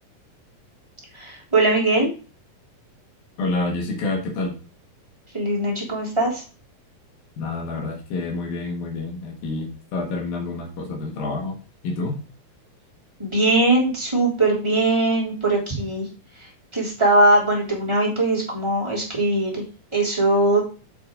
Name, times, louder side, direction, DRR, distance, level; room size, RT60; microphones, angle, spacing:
voice 1, 1.1-2.1 5.3-6.4 13.2-16.0 16.7-19.6 19.9-20.6, right 2 dB, 10° right, -4 dB, 3.0 m, -20 dB
voice 2, 3.4-4.6 7.4-11.6 11.8-12.2, left 3 dB, 85° left, 1 dB, 3.5 m, -28 dB
7.9 x 6.9 x 3.9 m, 0.35 s
omnidirectional pair, 4.0 m